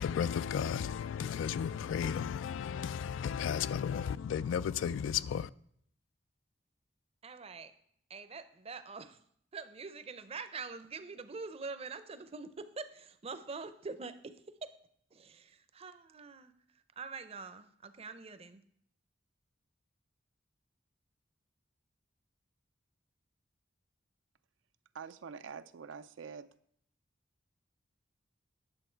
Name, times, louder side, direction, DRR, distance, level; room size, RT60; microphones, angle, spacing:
voice 1, 0.0-5.5, left 8 dB, 80° left, 0.3 m, -34 dB
voice 2, 7.2-7.7 8.1-9.2 9.5-14.7 15.1-18.6, right 4 dB, 35° right, 0.6 m, -45 dB
voice 3, 24.9-26.5, right 6 dB, 80° right, 0.4 m, -46 dB
9.9 x 6.8 x 4.5 m
head